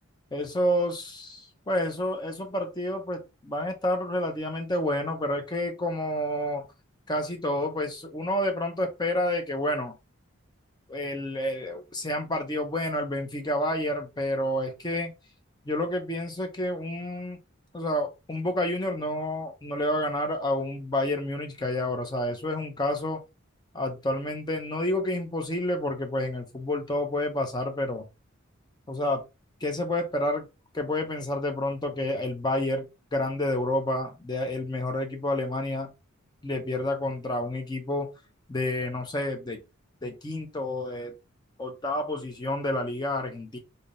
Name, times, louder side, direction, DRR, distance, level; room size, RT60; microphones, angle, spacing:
voice 1, 0.3-6.6 7.1-10.0 10.9-15.1 15.7-17.4 17.7-23.2 23.7-28.1 28.9-29.2 29.6-30.5 30.7-35.9 36.4-38.1 38.5-39.6 40.0-41.2 41.6-43.6, left 1 dB, 20° left, 0.7 m, -29 dB
3.5 x 2.7 x 2.5 m
head